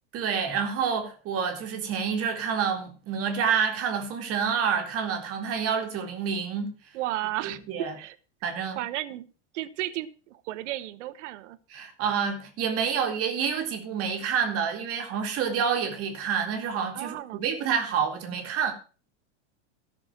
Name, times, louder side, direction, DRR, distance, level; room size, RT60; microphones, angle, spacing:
voice 1, 0.1-6.7 7.4-7.9 8.4-8.8 11.7-18.7, right 7 dB, 40° right, 2.4 m, -28 dB
voice 2, 6.9-8.1 8.8-9.3 9.5-11.6 16.9-17.4, right 15 dB, 75° right, 1.0 m, -33 dB
13.0 x 6.6 x 5.9 m
supercardioid pair, 130°, 36 cm